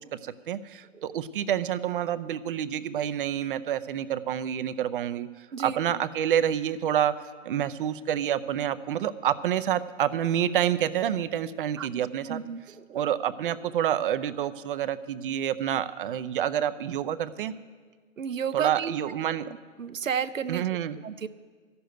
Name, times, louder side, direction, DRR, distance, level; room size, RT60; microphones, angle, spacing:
voice 1, 0.1-12.4 12.9-17.5 18.5-19.5 20.5-21.0, right 10 dB, 45° right, 13 dB, 0.6 m, -28 dB
voice 2, 12.3-13.1 18.2-19.0 19.8-20.6 21.0-21.3, right 7 dB, 85° right, 13 dB, 0.7 m, -32 dB
13.5 x 6.9 x 9.2 m, 1.5 s
figure-of-eight pair, 125°, 38 cm